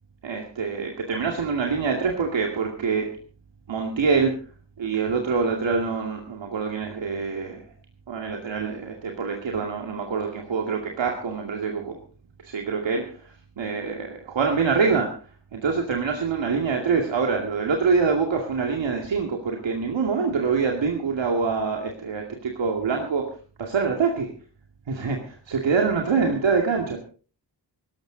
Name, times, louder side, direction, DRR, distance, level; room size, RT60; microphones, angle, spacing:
voice 1, 0.2-3.2 3.7-4.4 4.8-7.6 8.1-12.0 12.4-15.1 15.5-23.3 23.6-24.3 24.9-27.0, right 5 dB, 85° right, 2 dB, 2.5 m, -25 dB
18.0 x 14.5 x 4.0 m, 0.37 s
wide cardioid pair, 155°, 44 cm